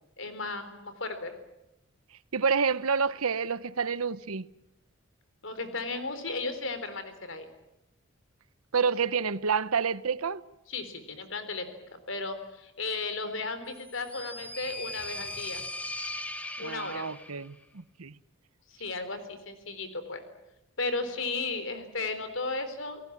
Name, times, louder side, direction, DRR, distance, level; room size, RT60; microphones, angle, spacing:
voice 1, 0.2-1.3 5.4-7.5 10.7-11.7 12.1-15.6 16.6-17.1 18.7-20.2 20.8-23.0, left 3 dB, 65° left, 3.9 m, -35 dB
voice 2, 2.3-4.5 8.7-10.4 16.6-18.1, right 5 dB, 90° right, 0.9 m, -28 dB
sound 1, 13.7-17.5, left 2 dB, 5° left, 1.2 m, -39 dB
29.0 x 18.5 x 8.8 m
head